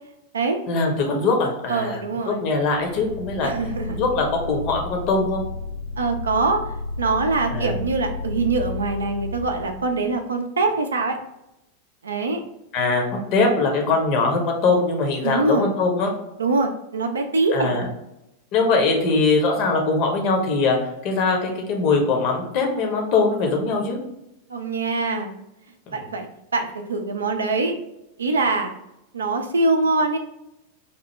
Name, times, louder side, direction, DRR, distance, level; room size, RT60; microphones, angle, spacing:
voice 1, 0.7-2.0 2.3-3.5 3.9-5.4 7.5-7.7 12.7-13.0 13.3-16.1 17.5-17.9 18.5-20.8 21.0-24.0, left 3 dB, 40° left, 2 dB, 0.8 m, -21 dB
voice 2, 1.7-2.4 3.4-4.0 6.0-11.2 12.0-12.4 15.2-15.7 16.4-17.7 24.5-25.3 25.9-27.8 28.2-28.7 29.1-30.2, right 3 dB, 70° right, 5 dB, 0.4 m, -23 dB
sound 1, 2.4-10.1, left 2 dB, 85° left, 1.1 m, -32 dB
4.3 x 2.1 x 3.1 m, 0.87 s
figure-of-eight pair, 90°, 0 cm